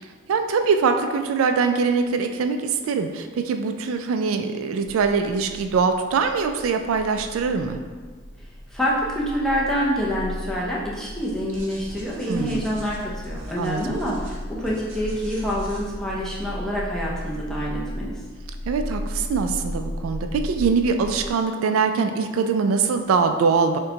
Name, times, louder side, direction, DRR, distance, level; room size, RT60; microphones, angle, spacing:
voice 1, 0.3-7.8 12.3-12.6 13.6-13.8 18.7-23.8, right 5 dB, 80° right, 6 dB, 0.3 m, -23 dB
sound 1, 4.8-21.3, left 1 dB, 80° left, 0.5 m, -36 dB
voice 2, 8.7-18.2, equal, 5° left, -5 dB, 0.5 m, -27 dB
sound 2, 11.5-16.3, equal, 60° right, 0.8 m, -41 dB
6.4 x 2.2 x 2.8 m, 1.5 s
head